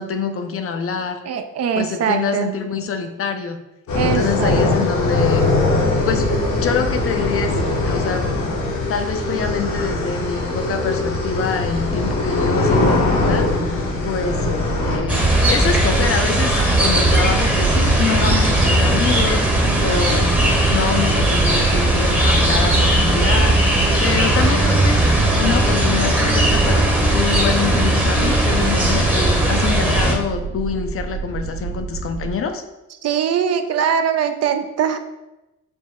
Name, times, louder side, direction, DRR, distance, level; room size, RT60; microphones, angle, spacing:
voice 1, 0.0-1.2 1.7-3.6 4.0-5.5 6.0-6.3 6.6-7.5 7.9-8.3 8.9-14.4 14.9-20.4 20.7-32.6, left 6 dB, 50° left, 6 dB, 0.5 m, -25 dB
voice 2, 1.3-2.5 3.9-4.9 33.0-35.0, right 7 dB, 55° right, 8 dB, 0.5 m, -22 dB
sound 1, 3.9-15.0, left 2 dB, 85° left, 1.4 m, -21 dB
sound 2, 13.2-32.3, right 5 dB, 85° right, 1.0 m, -28 dB
sound 3, 15.1-30.2, right 1 dB, 5° right, 0.8 m, -17 dB
5.2 x 2.1 x 3.5 m, 0.97 s
cardioid pair, 90°, 30 cm